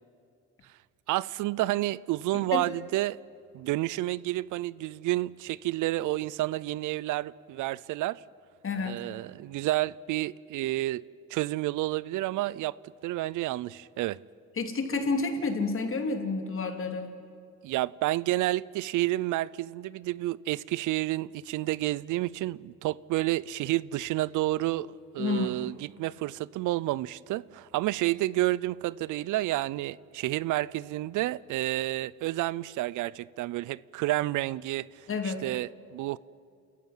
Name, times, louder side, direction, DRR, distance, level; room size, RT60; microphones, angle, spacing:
voice 1, 1.1-3.2 3.5-8.2 8.8-11.0 11.3-14.2 17.6-36.2, right 17 dB, 85° right, 0.6 m, -30 dB
voice 2, 8.6-9.0 14.6-17.1 25.2-25.6 35.1-35.4, left 4 dB, 45° left, 3.0 m, -29 dB
29.5 x 14.5 x 9.5 m
cardioid pair, 90°, 30 cm